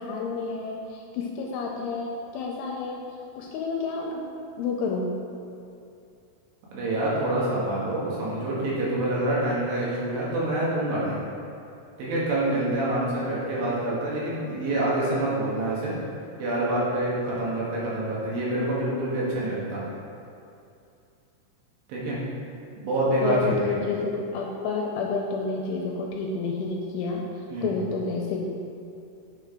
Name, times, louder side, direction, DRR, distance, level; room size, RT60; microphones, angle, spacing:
voice 1, 0.0-3.0 3.4-4.2 4.6-5.1 23.2-28.4, left 4 dB, 85° left, -1 dB, 2.9 m, -30 dB
voice 2, 6.7-11.2 12.0-16.0 16.4-19.8 21.9-22.2 22.8-23.8 27.5-27.7, right 1 dB, 65° right, -7 dB, 3.3 m, -26 dB
9.1 x 6.1 x 3.6 m, 2.6 s
omnidirectional pair, 5.8 m